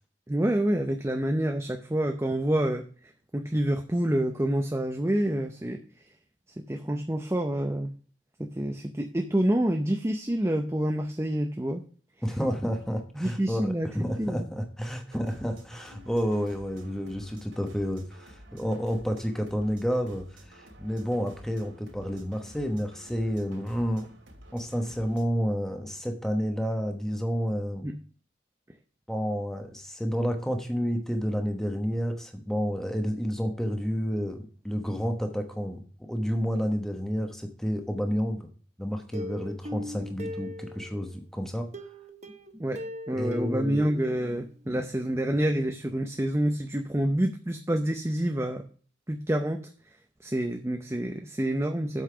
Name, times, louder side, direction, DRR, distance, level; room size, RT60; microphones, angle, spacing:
voice 1, 0.3-2.8 3.3-5.8 6.7-7.9 8.4-11.8 13.2-13.9 14.2-14.4 27.8-28.0 42.5-48.7 49.1-49.7 50.2-52.0, right 1 dB, 15° right, 4 dB, 0.6 m, -27 dB
voice 2, 12.2-24.1 24.5-27.9 29.1-35.8 36.1-38.5 38.8-41.7 43.1-43.9 44.7-44.8, equal, ahead, 4 dB, 1.1 m, -30 dB
sound 1, 15.1-25.3, equal, 80° right, 2.8 m, -51 dB
Plucked string instrument, 39.1-41.1 41.7-44.5 44.8-44.9 45.3-45.4, left 1 dB, 35° right, 0.9 m, -40 dB
8.2 x 5.7 x 5.7 m, 0.41 s
head